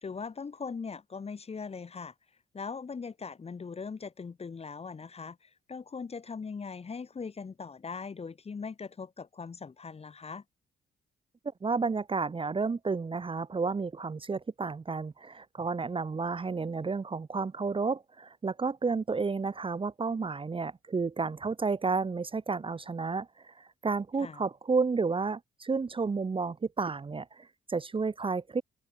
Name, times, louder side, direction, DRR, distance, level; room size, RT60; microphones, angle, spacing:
voice 1, 0.0-2.1 2.5-5.4 5.7-10.4 24.2-24.4, left 5 dB, 30° left, 1.3 m, -40 dB
voice 2, 11.6-23.3 23.8-28.6, right 4 dB, 25° right, 1.0 m, -31 dB
open air
cardioid pair, 90°, 20 cm